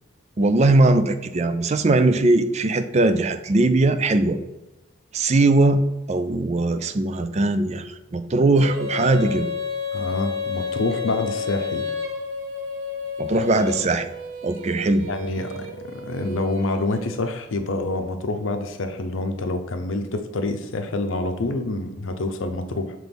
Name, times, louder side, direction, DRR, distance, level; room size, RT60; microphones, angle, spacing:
voice 1, 0.4-4.4 5.1-5.8 6.1-9.5 13.2-14.1 14.4-15.1, right 2 dB, 35° right, 10 dB, 0.4 m, -20 dB
Female singing, 8.6-17.4, left 5 dB, 85° right, 0.8 m, -31 dB
voice 2, 9.9-11.9 15.1-22.9, left 2 dB, 80° left, 7 dB, 0.6 m, -27 dB
6.0 x 3.1 x 5.2 m, 1.0 s
head